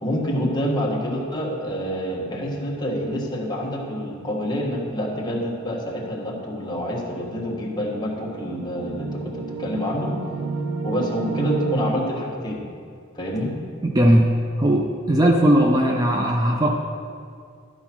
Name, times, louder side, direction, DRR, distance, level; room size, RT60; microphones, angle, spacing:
voice 1, 0.0-10.1 10.8-12.6 13.1-13.5, equal, 20° left, -3 dB, 1.4 m, -27 dB
sound 1, 7.2-11.9, right 4 dB, 70° right, 0.6 m, -31 dB
voice 2, 13.8-16.7, right 1 dB, 20° right, 1 dB, 0.4 m, -18 dB
11.5 x 4.8 x 5.9 m, 2.3 s
head